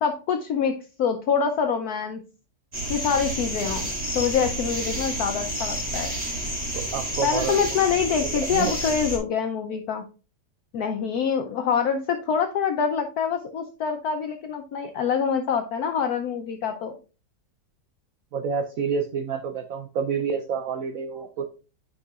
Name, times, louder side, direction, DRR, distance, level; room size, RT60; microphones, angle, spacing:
voice 1, 0.0-2.2 2.9-6.1 7.2-10.0 10.7-16.9, left 6 dB, 65° left, 5 dB, 1.1 m, -25 dB
sound 1, 2.7-9.2, right 1 dB, 20° right, 2.1 m, -30 dB
voice 2, 6.7-7.6 8.5-8.7 18.3-21.5, right 6 dB, 65° right, 8 dB, 0.9 m, -28 dB
9.5 x 5.6 x 2.4 m, 0.34 s
omnidirectional pair, 1.9 m